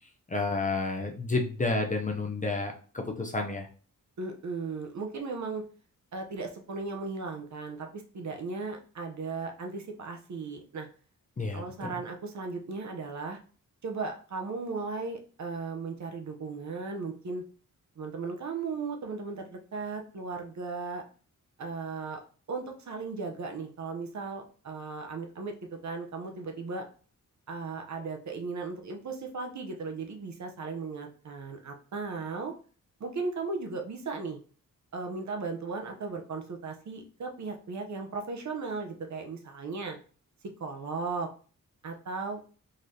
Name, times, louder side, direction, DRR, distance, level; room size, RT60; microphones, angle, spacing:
voice 1, 0.3-3.7 11.4-11.9, left 3 dB, 25° left, 3 dB, 0.5 m, -30 dB
voice 2, 4.2-5.6 6.1-10.9 11.5-13.4 13.8-17.4 18.0-21.0 21.6-22.2 22.5-26.9 27.5-32.5 33.0-34.4 34.9-40.0 40.6-41.3 41.8-42.4, right 4 dB, 55° right, 3 dB, 0.7 m, -36 dB
3.9 x 3.2 x 2.6 m, 0.40 s
wide cardioid pair, 135°, 33 cm